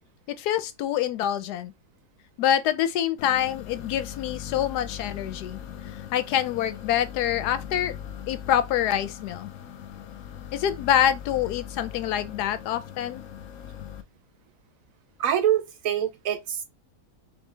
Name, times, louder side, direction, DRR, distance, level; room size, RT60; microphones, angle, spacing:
voice 1, 0.3-1.7 2.4-5.6 6.1-7.9 8.3-9.5 10.5-13.2, left 10 dB, 90° left, 1.2 m, -26 dB
sound 1, 3.2-14.0, left 9 dB, 65° left, 0.9 m, -40 dB
voice 2, 15.2-16.6, right 10 dB, 70° right, 0.9 m, -25 dB
3.8 x 3.1 x 3.2 m
omnidirectional pair, 1.7 m